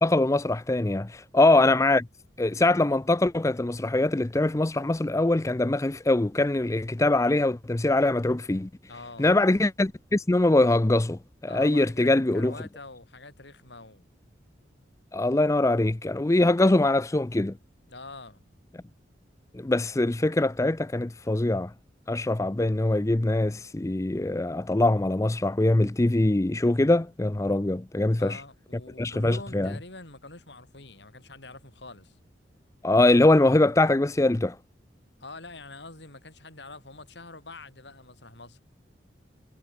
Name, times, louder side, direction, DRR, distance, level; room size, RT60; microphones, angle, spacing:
voice 1, 0.0-2.0 2.4-8.7 9.2-12.5 15.1-17.5 19.5-21.7 22.1-28.4 29.0-29.7 32.8-34.6, left 2 dB, 15° left, 0.5 m, -23 dB
voice 2, 1.4-1.7 8.9-9.3 11.5-14.1 17.9-18.4 28.1-32.2 35.2-38.6, left 3 dB, 70° left, 5.1 m, -45 dB
head